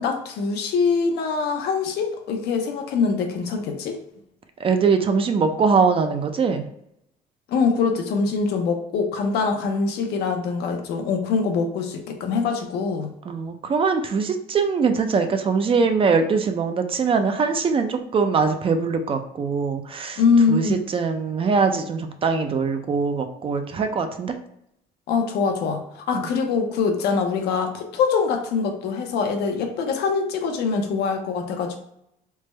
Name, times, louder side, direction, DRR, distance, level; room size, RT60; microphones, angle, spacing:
voice 1, 0.0-4.0 7.5-13.1 20.2-20.8 25.1-31.8, left 5 dB, 75° left, 4 dB, 0.6 m, -23 dB
voice 2, 4.6-6.6 13.3-20.2 20.5-24.3 26.1-26.3, right 5 dB, 35° right, 7 dB, 0.4 m, -22 dB
3.3 x 2.1 x 3.1 m, 0.76 s
cardioid pair, 110°, 17 cm